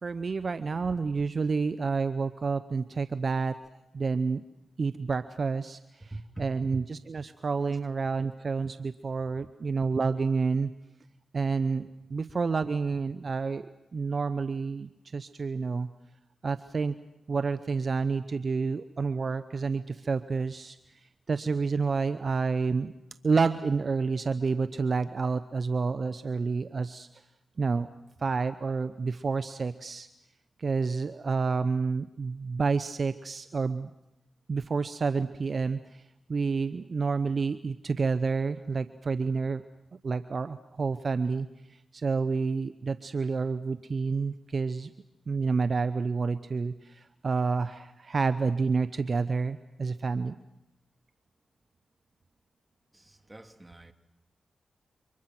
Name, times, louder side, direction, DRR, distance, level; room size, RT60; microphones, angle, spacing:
voice 1, 0.0-3.6 3.9-4.4 4.8-6.1 6.4-10.7 11.3-13.7 13.9-15.9 16.4-17.0 17.3-20.8 21.3-22.9 23.2-27.1 27.6-27.9 28.2-30.1 30.6-33.9 34.5-36.0 36.3-39.6 40.0-41.5 41.9-44.9 45.3-50.4, right 4 dB, 55° right, 0.9 m, -29 dB
voice 2, 6.1-6.5 52.9-53.9, right 1 dB, 20° right, 2.5 m, -43 dB
29.0 x 25.0 x 6.1 m
cardioid pair, 45°, 0 cm